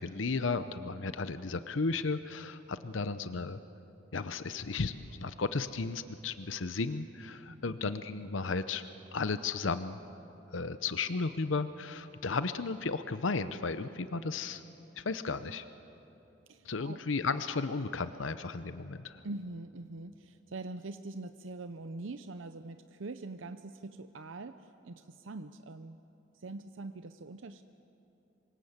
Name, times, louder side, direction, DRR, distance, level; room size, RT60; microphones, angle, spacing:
voice 1, 0.0-3.6 4.1-8.8 9.1-10.0 10.5-14.6 15.0-15.6 16.6-19.2, left 4 dB, 80° left, 12 dB, 0.8 m, -34 dB
voice 2, 7.5-7.8 16.5-17.0 19.2-24.6 24.8-26.0 26.4-27.6, right 2 dB, 85° right, 10 dB, 0.7 m, -43 dB
27.0 x 24.5 x 8.0 m, 2.9 s
head